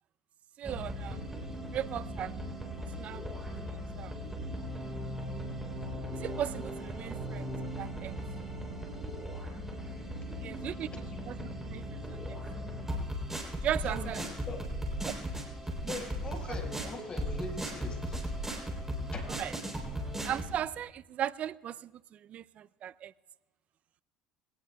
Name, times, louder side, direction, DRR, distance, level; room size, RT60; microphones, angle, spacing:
sound 1, 0.6-20.5, equal, 15° right, 3.4 m, -37 dB
voice 1, 0.6-1.2 1.7-2.3 2.8-3.4 4.0-4.1 6.1-8.1 10.4-10.9 11.6-12.2 13.6-14.2 15.0-15.1 19.4-19.5 20.2-23.1, right 10 dB, 50° right, 0.4 m, -37 dB
voice 2, 13.7-14.6 15.5-18.3 19.1-19.2, left 3 dB, 35° left, 4.9 m, -42 dB
22.0 x 18.0 x 2.3 m
hypercardioid pair, 75°, 3 cm